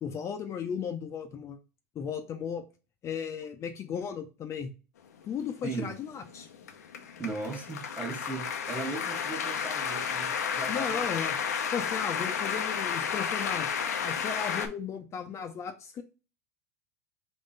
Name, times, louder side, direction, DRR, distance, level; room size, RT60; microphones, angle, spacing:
voice 1, 0.0-1.6 1.9-2.6 3.0-4.7 5.2-6.5 10.7-11.4 11.7-13.7 14.0-16.0, left 7 dB, 35° left, 0.6 m, -35 dB
sound 1, 5.4-14.7, left 7 dB, 85° left, 0.7 m, -32 dB
voice 2, 5.6-5.9 7.2-11.1, right 3 dB, 15° right, 1.2 m, -37 dB
3.7 x 3.0 x 4.0 m
hypercardioid pair, 100°, 9 cm